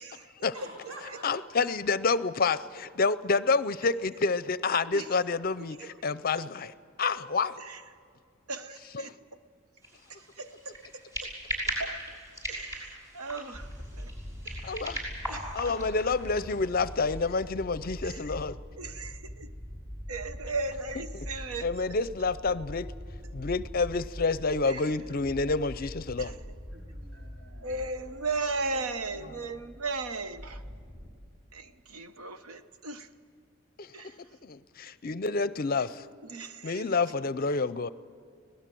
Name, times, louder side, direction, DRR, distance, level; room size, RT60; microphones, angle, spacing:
voice 1, 0.5-1.6 7.0-7.6 26.7-27.8 29.0-29.5, right 1 dB, 65° right, 4.4 m, -48 dB
voice 2, 1.2-7.5 8.9-9.1 14.6-15.1 15.5-18.6 21.1-21.3 21.6-22.9 23.3-26.3 33.8-33.9 34.4-36.1 36.6-37.9, left 4 dB, 40° left, 0.5 m, -28 dB
voice 3, 8.5-9.1 10.4-11.3 11.8-12.2 12.5-13.7 14.0-14.1 14.4-14.8 15.3-15.9 18.0-18.2 18.8-19.5 20.1-21.7 24.7-24.8 26.2-26.3 27.6-30.6 31.5-33.1 33.9-34.1 36.3-36.8, right 3 dB, 90° right, 1.0 m, -36 dB
sound 1, 9.8-17.4, right 1 dB, 15° right, 6.0 m, -39 dB
sound 2, 13.5-31.1, equal, 30° right, 5.4 m, -43 dB
25.0 x 18.0 x 7.7 m
head